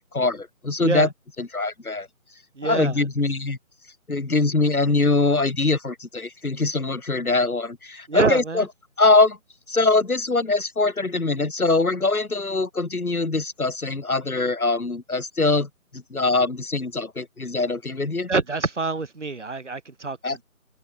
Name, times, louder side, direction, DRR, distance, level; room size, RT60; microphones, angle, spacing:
voice 1, 0.1-1.1 1.4-2.1 2.6-3.6 4.1-8.7 9.0-9.4 9.7-18.3 20.2-20.4, left 3 dB, 85° left, 6.9 m, -23 dB
voice 2, 2.6-2.9 8.1-8.7 18.3-20.2, right 3 dB, 55° right, 6.0 m, -25 dB
open air
figure-of-eight pair, 175°, 42 cm